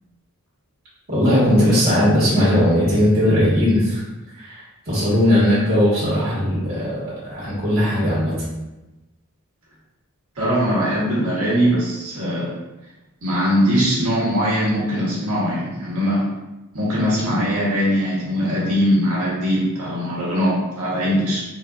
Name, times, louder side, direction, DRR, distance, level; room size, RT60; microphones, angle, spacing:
voice 1, 1.1-4.0 4.4-8.3, left 1 dB, 45° right, -9 dB, 1.4 m, -18 dB
voice 2, 10.4-12.5 13.2-16.2 16.7-21.4, equal, 70° right, -6 dB, 1.2 m, -21 dB
3.8 x 2.5 x 2.4 m, 1.0 s
head